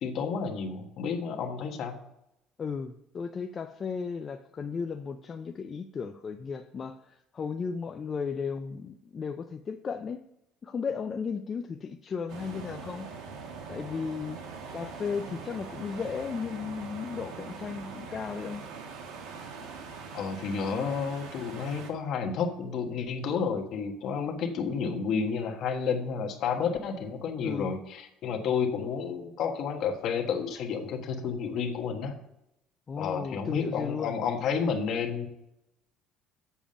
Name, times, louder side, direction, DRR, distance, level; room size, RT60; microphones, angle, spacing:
voice 1, 0.0-2.0 20.1-32.1 33.0-35.3, left 6 dB, 45° left, 4 dB, 1.3 m, -31 dB
voice 2, 2.6-10.2 10.6-13.1 13.7-14.4 14.7-18.6 27.4-27.7 32.9-34.1, left 6 dB, 25° left, 6 dB, 0.4 m, -35 dB
sound 1, 12.3-21.9, right 5 dB, 65° right, 1.7 m, -42 dB
7.2 x 7.1 x 5.1 m, 0.83 s
cardioid pair, 170°, 0 cm